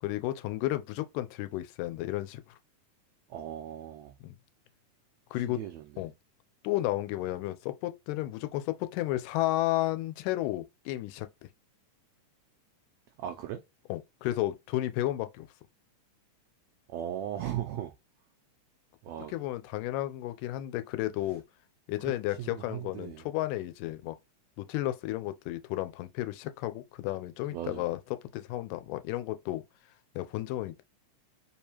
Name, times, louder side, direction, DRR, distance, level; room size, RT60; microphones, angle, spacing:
voice 1, 0.0-2.6 4.2-4.4 5.3-5.6 6.0-6.1 6.6-11.3 13.9-15.5 19.3-21.4 21.9-24.2 24.6-29.6 30.2-30.8, left 16 dB, 90° left, 2.2 m, -32 dB
voice 2, 3.3-4.1 5.3-5.8 13.2-13.6 16.9-17.9 19.0-19.3 22.4-23.3 27.5-27.9, right 11 dB, 85° right, 1.5 m, -37 dB
4.8 x 3.5 x 2.9 m
omnidirectional pair, 3.7 m